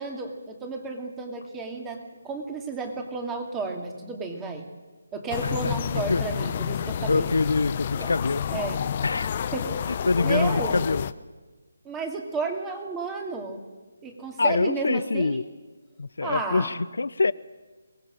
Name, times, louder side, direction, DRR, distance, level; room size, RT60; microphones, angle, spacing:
voice 1, 0.0-4.7 5.1-7.3 7.9-8.1 8.5-8.8 9.5-9.8 10.2-10.8 11.8-13.6 14.0-15.4 16.2-16.7, right 3 dB, 10° right, 4 dB, 2.3 m, -32 dB
sound 1, 5.3-11.1, left 8 dB, 30° left, 0.7 m, -29 dB
voice 2, 5.4-6.2 7.1-8.4 9.0-9.3 9.9-11.0 14.4-15.4 16.0-17.3, left 3 dB, 75° left, 17 dB, 0.7 m, -25 dB
23.5 x 18.5 x 7.6 m, 1.3 s
hypercardioid pair, 165°, 0 cm